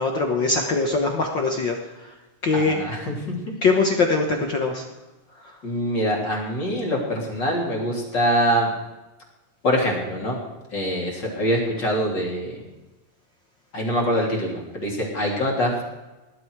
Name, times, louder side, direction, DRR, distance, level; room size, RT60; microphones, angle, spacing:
voice 1, 0.0-2.1 2.4-2.8 3.6-4.8, left 3 dB, 65° left, 2 dB, 1.1 m, -22 dB
voice 2, 2.5-3.4 5.6-8.7 9.6-10.4 10.7-12.6 13.7-15.8, equal, 30° left, -2 dB, 3.6 m, -24 dB
19.5 x 11.5 x 4.8 m, 1.1 s
omnidirectional pair, 4.0 m